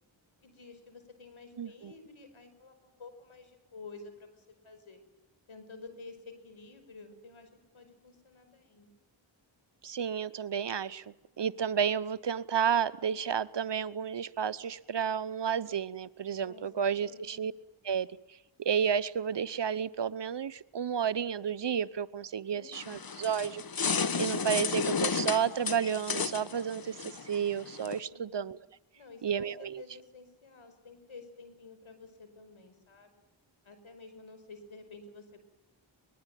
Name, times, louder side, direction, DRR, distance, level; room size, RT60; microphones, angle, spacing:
voice 1, 0.4-5.0 5.5-8.9 16.4-17.5 22.5-23.1 28.1-28.6 28.9-33.1 33.6-35.4, left 3 dB, 75° left, 9 dB, 5.4 m, -51 dB
voice 2, 1.6-1.9 9.8-17.5 17.8-18.1 18.6-23.6 24.2-28.6 29.2-29.8, right 7 dB, 60° right, 17 dB, 0.9 m, -31 dB
sound 1, 22.7-28.0, left 5 dB, 45° left, 1.2 m, -33 dB
24.5 x 21.0 x 9.2 m, 0.95 s
cardioid pair, 45°, 49 cm